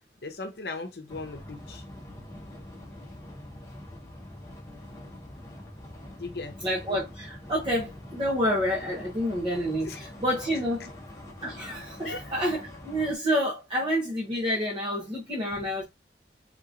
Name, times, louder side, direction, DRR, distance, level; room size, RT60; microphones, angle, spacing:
voice 1, 0.2-1.8 6.1-6.6 9.8-10.1 12.0-12.2 13.7-13.8, left 3 dB, 60° left, 0.8 m, -38 dB
sound 1, 1.1-13.2, left 1 dB, 20° left, 0.9 m, -44 dB
voice 2, 6.6-10.9 11.4-15.8, equal, 25° right, 0.9 m, -28 dB
3.7 x 3.0 x 2.5 m
head